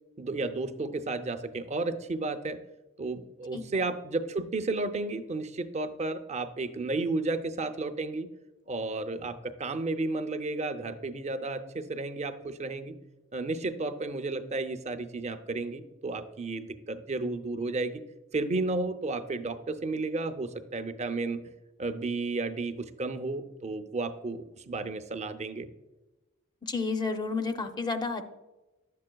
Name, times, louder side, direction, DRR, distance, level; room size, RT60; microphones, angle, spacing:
voice 1, 0.2-2.6 3.0-8.3 8.7-12.9 13.3-18.0 18.3-21.4 21.8-25.7, right 3 dB, 30° right, 8 dB, 0.5 m, -32 dB
voice 2, 3.5-3.8 26.6-28.3, left 4 dB, 20° left, 6 dB, 0.5 m, -31 dB
11.0 x 7.5 x 2.2 m, 1.1 s
head